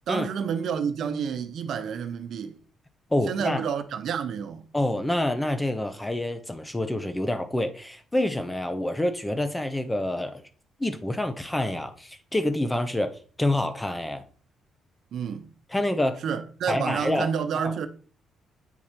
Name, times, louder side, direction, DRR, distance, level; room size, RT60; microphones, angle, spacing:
voice 1, 0.1-2.6 3.3-4.7 15.1-15.5 16.2-17.9, right 7 dB, 65° right, 0.8 m, -29 dB
voice 2, 3.1-3.6 4.7-10.4 10.8-13.1 13.4-14.2 15.7-16.2 16.7-17.3 17.6-17.7, left 1 dB, 10° left, 1.0 m, -27 dB
8.2 x 4.5 x 4.4 m
cardioid pair, 90°, 0 cm